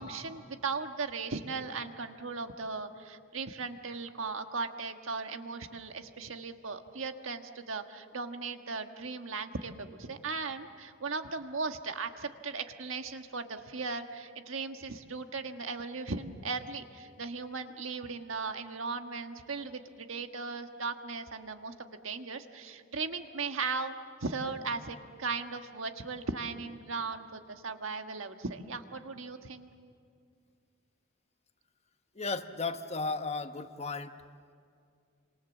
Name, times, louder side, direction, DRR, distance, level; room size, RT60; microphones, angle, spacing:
voice 1, 0.0-23.9 24.2-29.7, right 4 dB, 75° right, 6 dB, 1.5 m, -37 dB
voice 2, 32.1-34.1, left 3 dB, 30° left, 8 dB, 1.1 m, -34 dB
28.5 x 26.5 x 7.3 m, 2.2 s
head